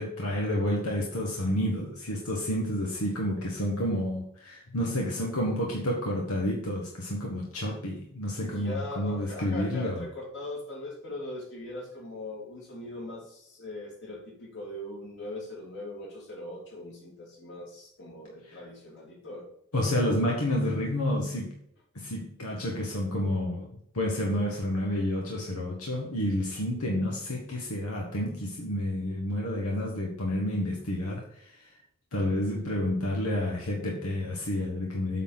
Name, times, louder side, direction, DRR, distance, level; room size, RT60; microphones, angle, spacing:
voice 1, 0.0-10.0 19.7-21.5 21.9-23.7 23.9-31.5 32.1-35.2, left 1 dB, 85° left, -1 dB, 1.5 m, -30 dB
voice 2, 8.4-19.5, left 1 dB, 55° left, -3 dB, 3.1 m, -40 dB
8.1 x 4.2 x 5.8 m, 0.73 s
head